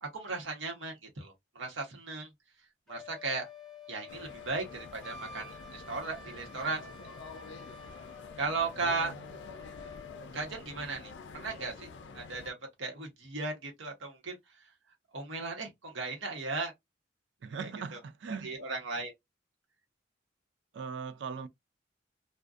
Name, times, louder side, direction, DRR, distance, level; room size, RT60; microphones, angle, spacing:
voice 1, 0.0-2.3 2.9-3.5 3.9-7.1 8.4-9.1 10.3-11.9 12.1-14.4 15.1-16.7 17.6-17.7 18.3-19.1, right 3 dB, 90° right, 1.0 m, -36 dB
Wind instrument woodwind instrument, 2.9-10.3, left 4 dB, ahead, 0.4 m, -50 dB
sound 1, 4.1-12.5, left 4 dB, 70° left, 0.4 m, -48 dB
voice 2, 8.8-9.3 17.4-18.5 20.7-21.5, right 5 dB, 70° right, 0.4 m, -40 dB
2.5 x 2.2 x 2.3 m
head